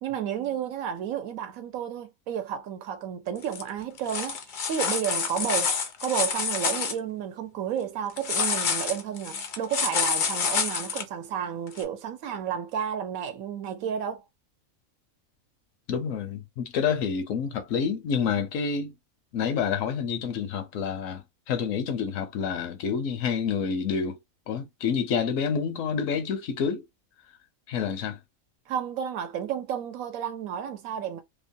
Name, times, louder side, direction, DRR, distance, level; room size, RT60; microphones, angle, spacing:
voice 1, 0.0-5.7 6.0-14.2 28.7-31.2, right 9 dB, 80° right, 1.1 m, -32 dB
sound 1, 3.4-3.6 4.0-6.9 8.2-11.0 11.8-11.9, left 6 dB, 55° left, 0.5 m, -28 dB
voice 2, 15.9-18.9 19.3-24.2 24.5-26.8 27.7-28.2, left 6 dB, 75° left, 1.0 m, -28 dB
3.0 x 2.1 x 2.6 m
omnidirectional pair, 1.4 m